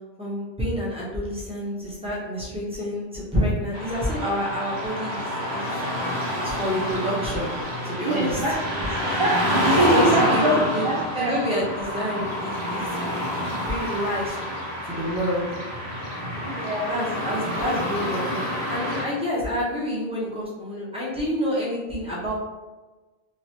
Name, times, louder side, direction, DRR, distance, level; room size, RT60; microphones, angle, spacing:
voice 1, 0.2-5.7 6.4-7.5 7.8-8.4 9.0-9.2 9.6-10.5 10.7-10.9 11.2-13.1 13.5-14.4 14.8-15.4 16.9-22.3, equal, 5° right, -7 dB, 0.9 m, -28 dB
Car passing by / Traffic noise roadway noise, 3.7-19.0, left 1 dB, 85° right, 0.9 m, -28 dB
voice 2, 8.0-11.4 16.4-16.9, right 2 dB, 55° right, -4 dB, 0.3 m, -24 dB
3.1 x 2.7 x 2.8 m, 1.2 s
omnidirectional pair, 1.0 m